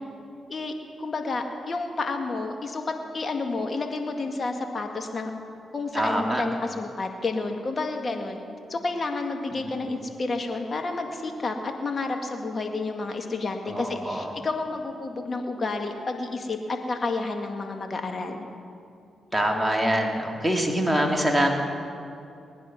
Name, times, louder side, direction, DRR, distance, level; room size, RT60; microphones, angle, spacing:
voice 1, 0.5-2.8 3.1-5.3 5.7-8.4 8.7-18.4, left 3 dB, 45° left, 3 dB, 2.1 m, -30 dB
voice 2, 5.9-6.4 9.5-9.7 13.7-14.3 19.3-21.5, equal, 5° right, 0 dB, 2.6 m, -25 dB
19.5 x 10.0 x 6.0 m, 2.5 s
supercardioid pair, 50°, 0 cm